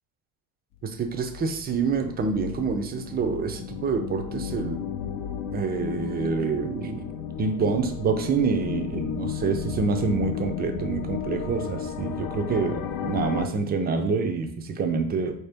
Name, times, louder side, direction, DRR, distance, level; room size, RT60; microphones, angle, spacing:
voice 1, 0.8-4.8 5.5-7.1 7.4-15.3, right 5 dB, 25° right, 6 dB, 0.4 m, -27 dB
sound 1, 1.0-13.5, left 7 dB, 50° left, 0.5 m, -34 dB
4.3 x 2.8 x 3.3 m, 0.62 s
cardioid pair, 125°, 43 cm